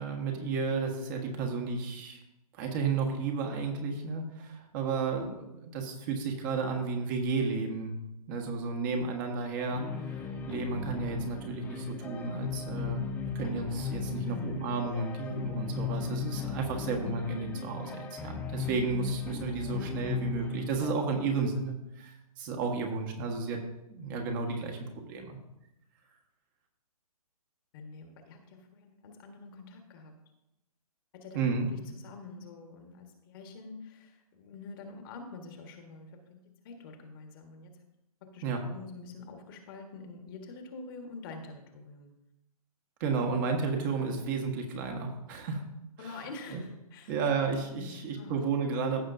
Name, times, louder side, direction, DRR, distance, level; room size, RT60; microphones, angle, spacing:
voice 1, 0.0-2.2 2.5-7.9 8.3-13.0 13.3-23.6 23.9-25.4 31.3-31.7 38.4-38.6 43.0-45.6 46.0-46.2 46.5-46.6 47.1-49.0, right 4 dB, 35° right, 2 dB, 1.6 m, -32 dB
sound 1, 9.7-20.9, left 6 dB, 10° left, 0.5 m, -37 dB
voice 2, 14.1-14.7 16.8-17.0 27.7-30.1 31.1-31.4 31.7-37.7 38.2-42.1 46.0-47.1 47.8-48.3, left 4 dB, 35° left, 4 dB, 1.5 m, -46 dB
15.0 x 6.4 x 2.6 m, 0.88 s
figure-of-eight pair, 135°, 19 cm